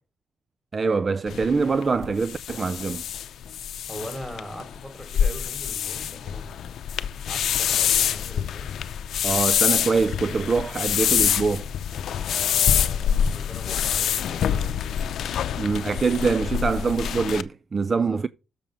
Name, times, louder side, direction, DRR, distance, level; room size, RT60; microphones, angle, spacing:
voice 1, 0.7-3.0 9.2-11.7 15.6-18.3, right 4 dB, 35° right, 0.4 m, -24 dB
sound 1, 1.3-17.4, left 9 dB, 75° left, 0.6 m, -26 dB
voice 2, 3.9-6.7 7.3-8.7 12.2-14.8 17.9-18.2, equal, ahead, 4.8 m, -40 dB
7.3 x 6.9 x 5.2 m
cardioid pair, 90°, 0 cm